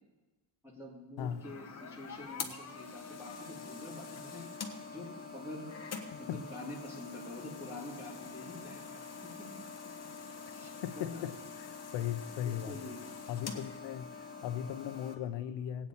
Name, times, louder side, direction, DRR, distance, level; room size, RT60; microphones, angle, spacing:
voice 1, 0.6-4.4 4.9-5.7 6.2-9.5 10.5-11.2 12.4-13.0, left 1 dB, 5° right, -4 dB, 2.8 m, -46 dB
sound 1, 1.2-15.1, left 5 dB, 35° left, 1.1 m, -45 dB
voice 2, 10.8-12.8 13.3-15.9, left 10 dB, 75° left, 11 dB, 0.8 m, -38 dB
18.0 x 8.8 x 4.2 m, 1.2 s
cardioid pair, 160°, 44 cm